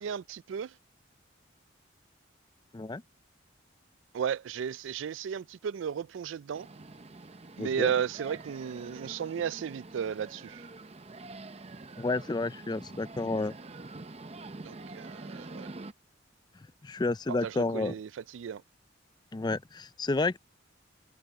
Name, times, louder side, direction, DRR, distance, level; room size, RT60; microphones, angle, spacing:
voice 1, 0.0-0.7 4.1-6.7 7.6-10.6 14.6-15.7 17.3-18.6, right 8 dB, 75° right, 0.4 m, -34 dB
sound 1, 6.5-15.9, right 2 dB, 30° right, 0.7 m, -46 dB
voice 2, 7.6-7.9 12.0-13.5 16.8-17.9 19.3-20.4, left 3 dB, 20° left, 0.4 m, -30 dB
head